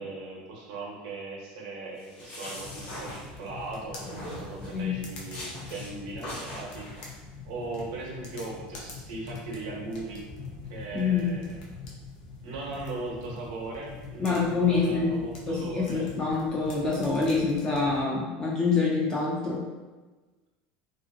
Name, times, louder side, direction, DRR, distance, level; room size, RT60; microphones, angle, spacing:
voice 1, 0.0-7.1 7.4-10.2 10.7-11.4 12.4-16.1, right 2 dB, 80° right, -2 dB, 0.7 m, -38 dB
sound 1, 2.0-3.7 4.0-4.8 5.3-5.9 6.2-7.0, left 1 dB, 35° left, 0.7 m, -41 dB
sound 2, 2.6-18.1, left 4 dB, 80° left, 0.6 m, -44 dB
voice 2, 10.9-11.3 14.2-15.1 15.5-19.6, left 4 dB, 15° left, -5 dB, 0.3 m, -26 dB
2.5 x 2.5 x 2.6 m, 1.3 s
cardioid pair, 170°, 4 cm